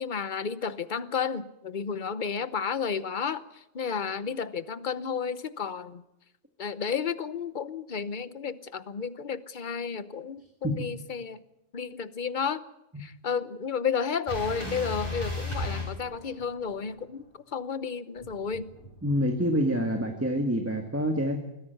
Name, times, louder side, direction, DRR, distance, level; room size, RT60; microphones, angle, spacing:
voice 1, 0.0-6.0 6.6-11.4 11.7-12.6 13.0-18.7, left 6 dB, 40° left, 14 dB, 0.9 m, -32 dB
sound 1, 14.3-16.8 18.2-19.5, left 2 dB, 20° left, 7.5 m, -35 dB
voice 2, 19.0-21.4, equal, 10° right, 4 dB, 1.5 m, -26 dB
21.0 x 15.0 x 9.2 m, 0.89 s
omnidirectional pair, 1.4 m